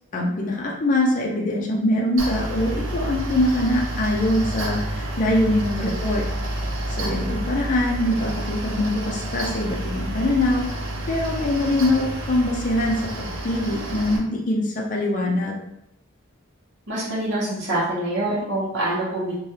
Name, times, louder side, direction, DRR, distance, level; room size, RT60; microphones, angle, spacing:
voice 1, 0.1-6.2 7.0-10.7 11.1-15.6, left 1 dB, 40° left, -2 dB, 0.5 m, -23 dB
Mechanical fan, 2.2-14.2, right 1 dB, 85° right, 0.6 m, -29 dB
voice 2, 16.9-19.3, right 1 dB, 60° right, -8 dB, 0.8 m, -25 dB
3.2 x 2.2 x 2.8 m, 0.81 s
head